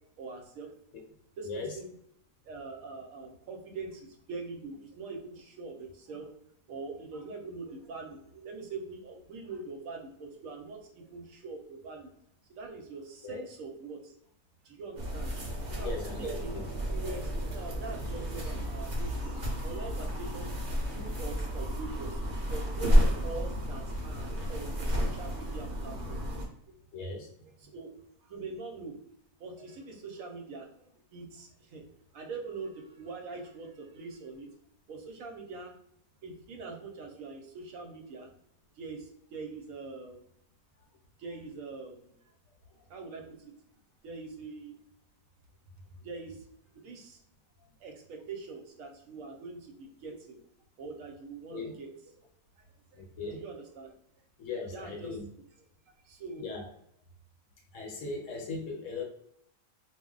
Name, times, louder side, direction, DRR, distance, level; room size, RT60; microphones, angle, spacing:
voice 1, 0.2-0.7 1.4-1.9 2.4-6.3 6.7-12.1 12.5-14.1 14.6-15.3 15.7-16.6 16.9-19.1 19.6-20.5 20.9-22.2 22.5-26.2 26.7-26.8 27.4-27.9 28.2-29.0 29.4-31.8 32.1-34.5 34.9-35.7 36.2-38.3 38.8-40.2 41.2-42.1 42.9-43.5 44.0-44.8 45.9-46.5 46.8-47.2 47.8-50.4 50.8-52.1 52.6-52.7 52.9-53.9 54.7-55.2 56.0-56.5, right 4 dB, 75° right, 2 dB, 1.0 m, -43 dB
sound 1, 15.0-26.4, equal, 45° right, 0.7 m, -31 dB
voice 2, 15.8-16.6 26.9-27.3 51.5-51.7 52.9-53.4 54.4-55.3 56.4-56.7 57.7-59.0, left 3 dB, 70° left, 1 dB, 0.9 m, -38 dB
2.4 x 2.0 x 3.7 m, 0.73 s
omnidirectional pair, 1.5 m